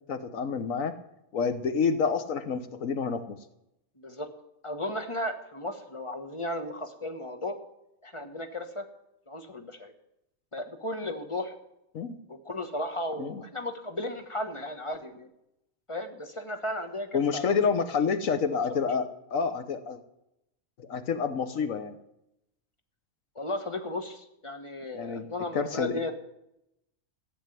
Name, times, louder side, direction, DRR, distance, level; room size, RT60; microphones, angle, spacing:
voice 1, 0.1-0.9 1.3-3.4 11.9-12.2 13.2-13.4 17.1-20.0 20.8-21.9 24.9-25.3 25.5-26.0, left 5 dB, 85° left, 10 dB, 1.5 m, -28 dB
voice 2, 4.0-4.3 4.6-7.6 8.0-8.8 9.3-9.9 10.5-11.5 12.3-15.3 15.9-17.6 18.5-18.8 23.3-26.1, left 1 dB, 25° left, 6 dB, 1.4 m, -35 dB
14.5 x 6.9 x 9.2 m, 0.84 s
omnidirectional pair, 1.3 m